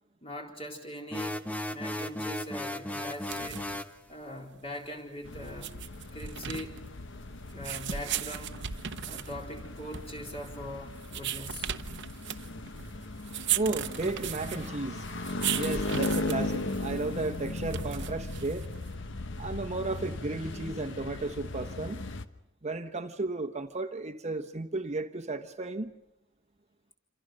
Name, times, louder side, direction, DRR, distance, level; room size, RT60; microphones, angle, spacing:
voice 1, 0.2-1.4 1.7-3.7 4.1-5.7 6.1-6.8 7.5-8.6 9.0-11.7 15.1-15.2 15.5-15.9, equal, 30° left, 4.1 m, -42 dB
sound 1, 1.1-4.0, left 1 dB, 10° left, 1.1 m, -35 dB
sound 2, 3.1-19.0, right 10 dB, 65° right, 1.0 m, -37 dB
sound 3, 5.2-22.2, left 2 dB, 65° left, 1.2 m, -37 dB
voice 2, 13.5-15.0 15.6-18.6 19.4-22.0 22.6-25.9, right 2 dB, 35° right, 1.1 m, -34 dB
27.5 x 27.0 x 6.4 m
head